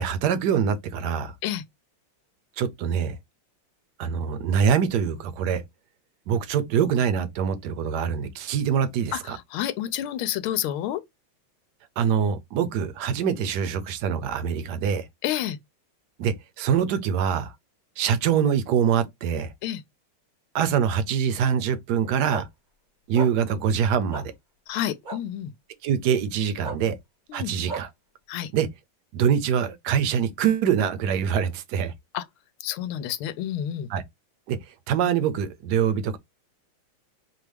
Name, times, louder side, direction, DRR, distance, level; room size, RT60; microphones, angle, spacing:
voice 1, 0.0-1.3 2.6-3.1 4.0-5.6 6.3-9.4 12.0-15.1 16.2-17.5 18.0-19.5 20.5-22.5 23.1-24.3 25.8-27.0 27.3-27.9 28.5-28.7 29.1-31.9 33.9-34.0 34.5-34.6 34.9-36.2, right 8 dB, 65° right, 1.1 m, -24 dB
voice 2, 9.1-11.0 15.2-15.6 19.6-19.8 24.7-25.5 27.3-27.5 28.3-28.5 32.1-32.2 32.6-33.9, left 11 dB, 85° left, 1.4 m, -29 dB
sound 1, 22.3-22.4 23.1-23.3 24.1-24.2 25.1-25.2 26.6-26.8 27.7-27.8, right 3 dB, 40° right, 0.6 m, -32 dB
6.2 x 2.3 x 3.4 m
omnidirectional pair, 2.3 m